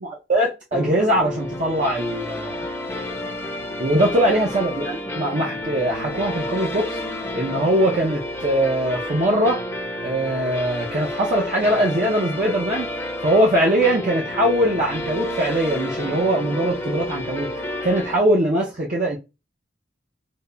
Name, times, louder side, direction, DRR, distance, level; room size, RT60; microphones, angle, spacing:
voice 1, 0.0-2.6 3.8-7.0 7.3-9.6 10.0-12.9 13.2-19.2, right 1 dB, 45° right, 0.6 m, -21 dB
sound 1, 0.7-18.2, left 1 dB, 15° left, 0.6 m, -30 dB
5.1 x 2.0 x 2.2 m
head